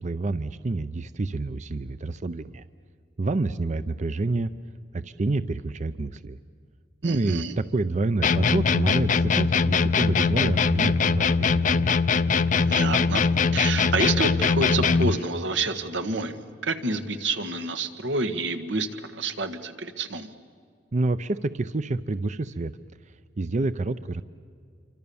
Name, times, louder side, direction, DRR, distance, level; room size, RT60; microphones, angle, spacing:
voice 1, 0.0-2.6 3.2-4.5 4.9-6.4 7.0-11.9 20.9-22.7 23.4-24.2, right 3 dB, 40° right, 13 dB, 0.5 m, -28 dB
voice 2, 7.0-7.5 12.5-20.3, right 3 dB, 90° right, 7 dB, 1.6 m, -28 dB
sound 1, 8.2-15.2, left 5 dB, 45° left, 0.5 m, -22 dB
27.5 x 25.0 x 7.1 m, 2.2 s
head